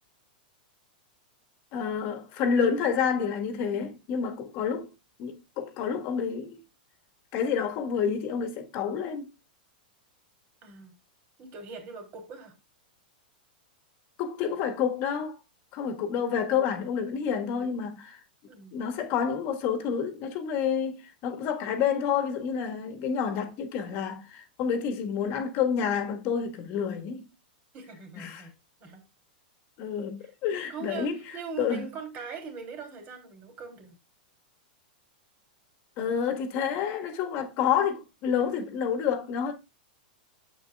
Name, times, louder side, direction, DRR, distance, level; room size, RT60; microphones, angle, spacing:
voice 1, 1.7-4.9 5.2-6.6 7.3-9.3 14.2-15.4 15.7-18.2 18.7-27.3 28.2-28.5 29.8-31.1 31.6-31.8 36.0-39.5, left 7 dB, 45° left, 1.5 m, -29 dB
voice 2, 10.6-10.9 11.4-12.5 18.5-18.7 27.7-28.5 28.8-29.0 30.2-30.3 30.7-33.9, right 5 dB, 40° right, 3.1 m, -41 dB
9.9 x 7.8 x 2.4 m
hypercardioid pair, 115°, 5 cm